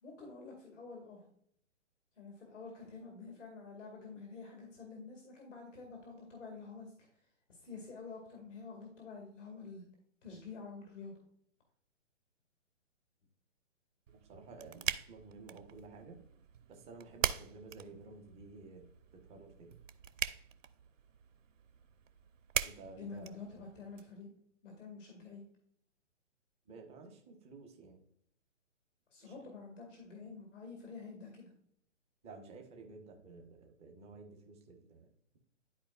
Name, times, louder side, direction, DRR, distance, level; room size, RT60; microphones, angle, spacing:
voice 1, 0.0-1.3 2.2-7.1 7.5-9.8 10.2-11.2 23.0-24.3 24.6-25.4 29.1-31.5, left 4 dB, 75° left, 1 dB, 2.2 m, -48 dB
voice 2, 14.1-16.2 16.7-18.8 19.1-19.7 22.6-23.4 26.7-28.0 29.2-29.3 32.2-35.1, right 3 dB, 5° left, 3 dB, 0.3 m, -53 dB
sound 1, 14.1-24.0, right 9 dB, 80° right, 0.6 m, -42 dB
12.5 x 4.3 x 2.4 m, 0.69 s
hypercardioid pair, 135°, 37 cm